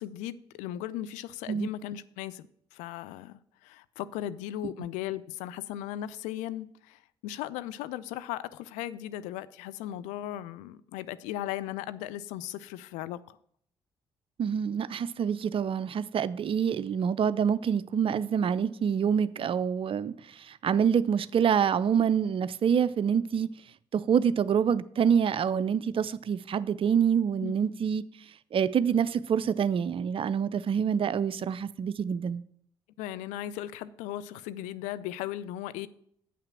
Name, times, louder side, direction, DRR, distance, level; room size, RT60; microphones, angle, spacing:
voice 1, 0.0-2.5 2.7-13.4 27.4-27.5 33.0-35.9, left 13 dB, 70° left, 0.4 m, -37 dB
voice 2, 14.4-20.1 20.6-23.5 23.9-28.0 28.5-32.4, right 7 dB, 45° right, 0.5 m, -26 dB
8.4 x 5.8 x 6.0 m
hypercardioid pair, 45°, 13 cm